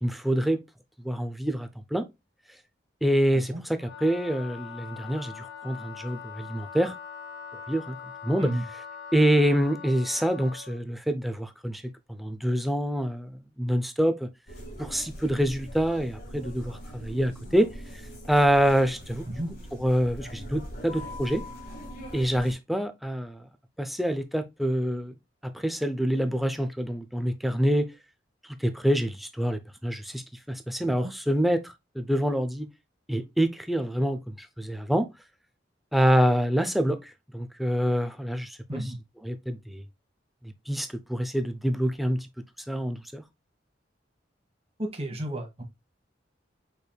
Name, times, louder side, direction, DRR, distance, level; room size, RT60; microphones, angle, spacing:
voice 1, 0.0-0.6 1.0-2.0 3.0-6.9 7.7-8.0 8.2-8.5 9.1-11.8 12.2-14.3 14.8-17.7 18.3-19.3 19.8-21.4 22.1-23.4 23.8-25.1 25.4-27.9 28.6-30.2 30.5-32.7 33.1-35.1 35.9-38.6 39.3-39.8 40.7-42.3 42.7-43.2, equal, ahead, 0.5 m, -26 dB
Wind instrument woodwind instrument, 3.7-10.8, left 7 dB, 70° left, 1.3 m, -42 dB
sound 1, 14.5-22.5, equal, 50° left, 1.9 m, -42 dB
voice 2, 30.8-31.1 38.7-39.0 44.8-45.6, right 1 dB, 35° right, 1.3 m, -32 dB
5.1 x 4.5 x 2.2 m
head